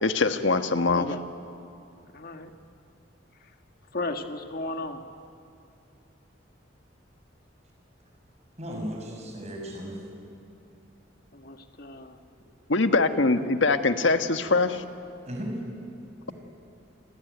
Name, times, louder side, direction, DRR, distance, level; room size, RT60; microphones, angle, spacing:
voice 1, 0.0-1.0 12.7-14.8, left 3 dB, 70° left, 8 dB, 1.4 m, -23 dB
voice 2, 0.9-1.2 2.1-2.5 3.4-3.5 3.9-5.0 11.3-12.2, left 2 dB, 50° left, 6 dB, 1.6 m, -35 dB
voice 3, 8.6-10.0 15.3-15.5, equal, 35° right, 1 dB, 6.3 m, -35 dB
29.0 x 20.5 x 9.3 m, 2.6 s
head